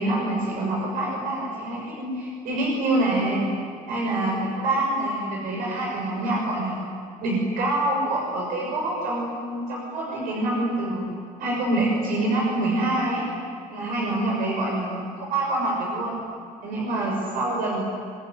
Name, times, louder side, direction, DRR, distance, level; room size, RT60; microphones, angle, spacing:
voice 1, 0.0-3.4 3.9-6.8 7.2-11.0 11.4-13.3 13.7-16.1 16.6-17.9, right 1 dB, 70° right, -3 dB, 6.5 m, -26 dB
25.5 x 22.5 x 9.6 m, 2.1 s
cardioid pair, 150°, 15 cm